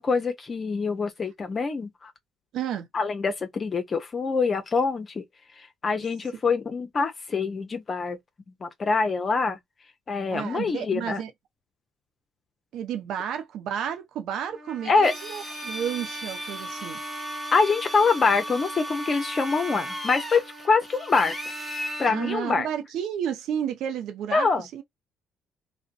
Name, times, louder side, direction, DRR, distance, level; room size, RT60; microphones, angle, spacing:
voice 1, 0.0-2.1 2.9-5.2 5.5-8.2 8.6-9.6 10.1-11.2 14.8-15.1 17.5-21.3 22.0-22.7 24.3-24.7, left 4 dB, 40° left, 0.6 m, -25 dB
voice 2, 2.5-2.9 10.3-11.3 12.7-17.0 22.1-24.5 24.7-24.8, right 9 dB, 70° right, 0.5 m, -31 dB
Trumpet, 14.4-22.4, right 2 dB, 40° right, 1.3 m, -42 dB
Drill, 15.0-22.2, equal, 5° left, 0.9 m, -36 dB
2.5 x 2.1 x 2.4 m
hypercardioid pair, 60°, 0 cm